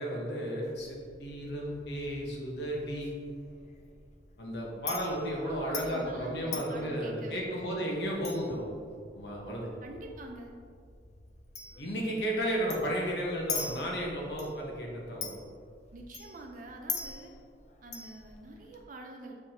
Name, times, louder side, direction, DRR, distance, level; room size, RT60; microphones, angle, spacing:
voice 1, 0.0-3.2 4.4-8.8 9.1-9.7 11.8-15.4, equal, 65° left, -2 dB, 1.3 m, -33 dB
Chink clink, 0.6-18.8, left 5 dB, 40° left, 0.5 m, -44 dB
voice 2, 5.4-7.5 9.8-10.5 15.9-17.3 17.8-19.4, right 2 dB, 45° right, 2 dB, 0.5 m, -45 dB
6.8 x 4.7 x 2.9 m, 2.2 s
head